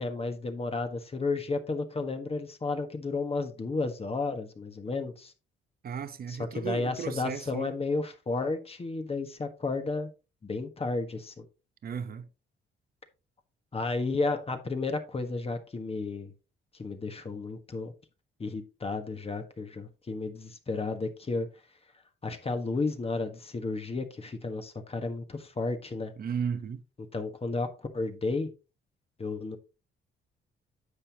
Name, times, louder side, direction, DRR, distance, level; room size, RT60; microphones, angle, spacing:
voice 1, 0.0-5.3 6.3-10.1 10.4-11.4 13.7-16.3 16.8-17.9 18.4-21.5 22.2-26.1 27.1-28.5 29.2-29.6, left 3 dB, 30° left, 1.5 m, -32 dB
voice 2, 5.8-7.7 11.8-12.3 26.2-26.8, right 7 dB, 50° right, 0.9 m, -35 dB
9.9 x 6.9 x 2.9 m
cardioid pair, 90°, 20 cm